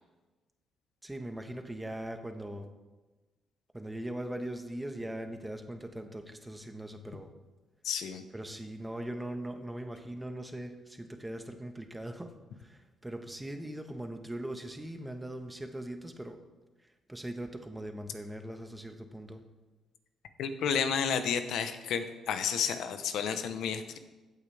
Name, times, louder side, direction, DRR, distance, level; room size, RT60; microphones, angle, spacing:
voice 1, 1.0-2.7 3.7-7.3 8.3-16.4 17.1-19.5, right 1 dB, 10° right, 6 dB, 1.3 m, -40 dB
voice 2, 7.8-8.2 20.4-24.0, left 7 dB, 80° left, 9 dB, 1.0 m, -31 dB
15.5 x 8.6 x 3.5 m, 1.2 s
cardioid pair, 90°, 0 cm